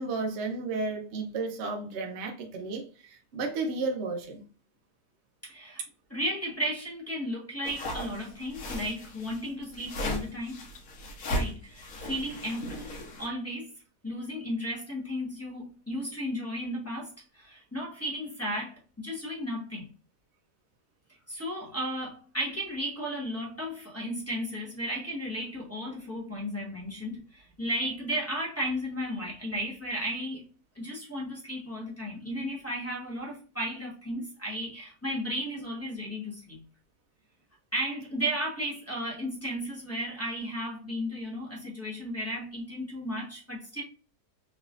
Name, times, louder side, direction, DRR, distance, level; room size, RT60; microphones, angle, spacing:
voice 1, 0.0-4.4, right 3 dB, 55° right, 3 dB, 0.8 m, -33 dB
voice 2, 5.4-5.8 6.1-10.7 11.3-13.7 14.0-19.9 21.3-30.4 30.7-36.6 37.7-43.8, equal, 10° left, -5 dB, 0.7 m, -34 dB
sound 1, 7.6-13.3, equal, 60° left, 1.3 m, -36 dB
3.5 x 3.0 x 2.4 m, 0.36 s
omnidirectional pair, 1.7 m